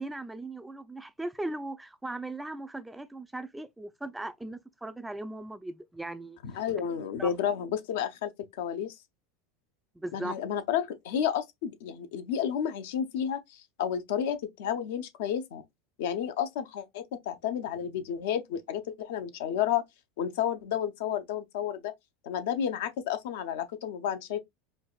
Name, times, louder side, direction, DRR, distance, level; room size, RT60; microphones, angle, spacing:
voice 1, 0.0-6.4 7.2-7.3 9.9-10.4, right 2 dB, 5° right, 0.4 m, -38 dB
voice 2, 6.4-8.3 8.6-9.0 10.1-15.6 16.0-19.8 20.2-21.9 22.2-24.4, left 9 dB, 75° left, 0.7 m, -31 dB
4.5 x 2.4 x 2.3 m
supercardioid pair, 110°, 0 cm